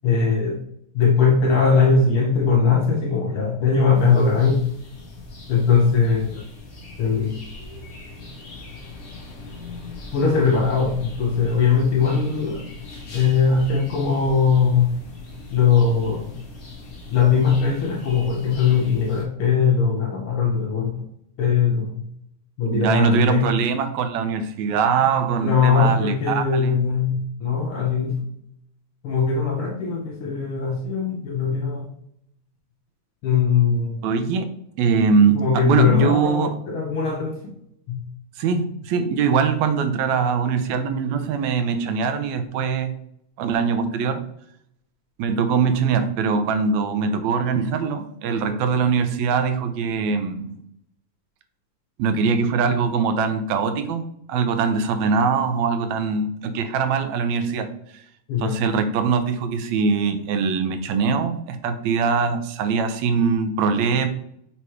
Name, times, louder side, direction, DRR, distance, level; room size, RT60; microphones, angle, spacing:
voice 1, 0.0-0.6 0.9-4.6 5.5-6.4 7.0-7.4 10.1-12.6 13.1-14.9 15.5-16.3 17.1-20.9 21.4-22.0 22.6-23.5 25.4-28.2 29.0-31.9 33.2-34.0 35.3-37.4 37.9-38.1 58.3-58.6, left 5 dB, 75° left, 1.2 m, -20 dB
sound 1, 3.9-19.2, left 3 dB, 55° left, 0.9 m, -40 dB
voice 2, 22.7-26.8 34.0-34.5 34.8-36.6 38.4-42.9 43.4-44.2 45.2-50.6 52.0-57.7 58.4-64.1, right 5 dB, 75° right, 1.8 m, -22 dB
6.9 x 3.0 x 4.7 m
omnidirectional pair, 3.5 m